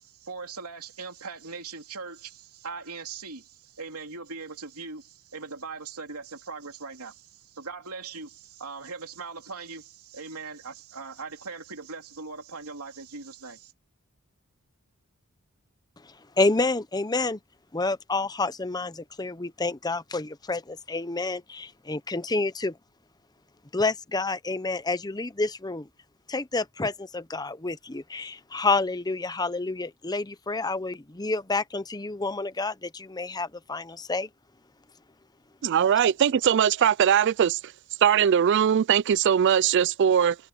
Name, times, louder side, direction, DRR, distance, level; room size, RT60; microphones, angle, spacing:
voice 1, 0.0-13.7, right 4 dB, 90° right, 3.2 m, -40 dB
voice 2, 16.4-17.4 17.7-22.7 23.7-25.8 26.3-34.3, left 3 dB, 20° left, 0.8 m, -29 dB
voice 3, 35.6-37.6 38.0-40.4, right 8 dB, 55° right, 0.3 m, -21 dB
head